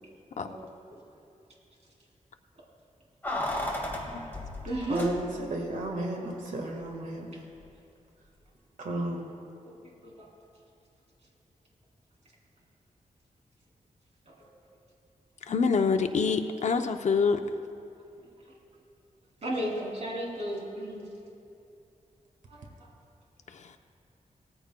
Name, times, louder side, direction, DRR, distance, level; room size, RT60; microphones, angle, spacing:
voice 1, 0.4-1.0 4.2-4.3 4.6-5.1 7.3-7.4 9.6-10.3 14.2-14.5 18.2-18.3 19.4-21.1 22.5-22.9, right 1 dB, 50° right, -3 dB, 3.1 m, -35 dB
Keys jangling, 3.2-5.6 5.9-6.0, left 1 dB, 15° left, 1.8 m, -34 dB
voice 2, 4.9-7.4 8.8-9.3, right 1 dB, 70° right, 1 dB, 1.6 m, -33 dB
voice 3, 15.5-17.4 23.5-23.7, left 5 dB, 60° left, 6 dB, 0.6 m, -26 dB
18.5 x 14.5 x 2.2 m, 2.6 s
wide cardioid pair, 140°, 14 cm